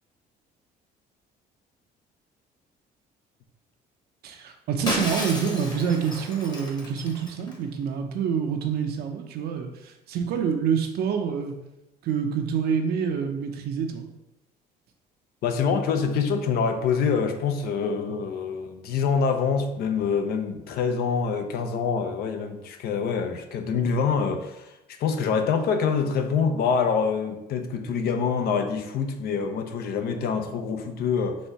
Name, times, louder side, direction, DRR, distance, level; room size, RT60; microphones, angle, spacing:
voice 1, 4.2-11.6 12.0-14.1, right 7 dB, 70° right, 5 dB, 0.7 m, -27 dB
Shatter, 4.9-7.6, left 2 dB, 25° left, 1.0 m, -32 dB
voice 2, 15.4-31.4, left 6 dB, 65° left, 6 dB, 0.6 m, -25 dB
4.2 x 2.7 x 4.5 m, 0.92 s
cardioid pair, 110°, 17 cm